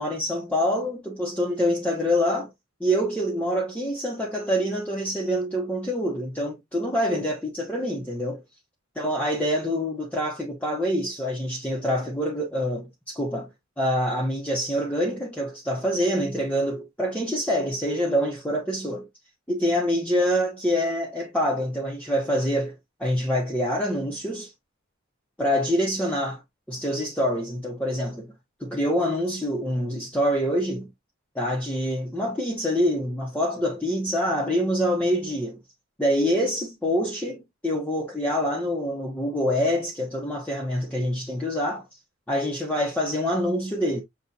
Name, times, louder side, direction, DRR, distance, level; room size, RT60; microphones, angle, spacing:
voice 1, 0.0-2.5 2.8-8.4 9.0-13.5 13.8-19.1 19.5-22.7 23.0-24.5 25.4-26.4 26.7-28.3 28.6-30.9 31.3-35.6 36.0-41.8 42.3-44.0, equal, 5° left, 1.1 m, -26 dB
6.2 x 3.2 x 2.7 m
head